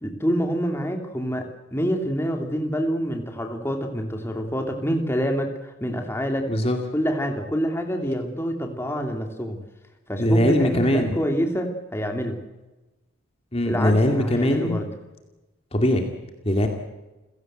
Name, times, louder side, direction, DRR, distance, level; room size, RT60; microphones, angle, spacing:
voice 1, 0.0-6.5 6.9-9.6 10.1-12.4 13.6-14.9, equal, 10° left, 4 dB, 2.8 m, -26 dB
voice 2, 10.2-11.2 13.5-14.8 15.7-16.0 16.4-16.7, equal, 25° left, 4 dB, 2.4 m, -21 dB
30.0 x 16.5 x 7.9 m, 1.1 s
head